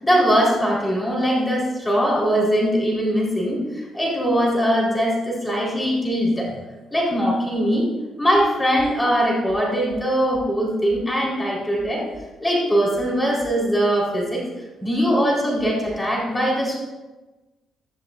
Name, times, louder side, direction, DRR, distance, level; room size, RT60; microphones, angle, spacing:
voice 1, 0.0-6.6 6.9-7.9 8.2-12.1 12.4-14.4 14.8-16.8, equal, 15° left, -3 dB, 4.1 m, -21 dB
15.5 x 12.0 x 2.6 m, 1.2 s
cardioid pair, 90°, 0 cm